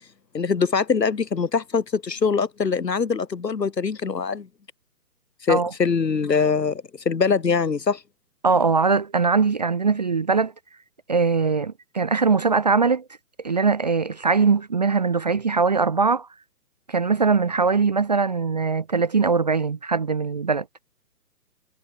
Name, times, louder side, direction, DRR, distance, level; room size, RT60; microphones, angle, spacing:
voice 1, 0.3-4.5 5.4-8.0, left 5 dB, 85° left, 3.4 m, -23 dB
voice 2, 8.4-10.5 11.1-13.0 13.4-16.3 16.9-20.7, right 4 dB, 25° right, 0.6 m, -21 dB
hypercardioid pair, 155°, 49 cm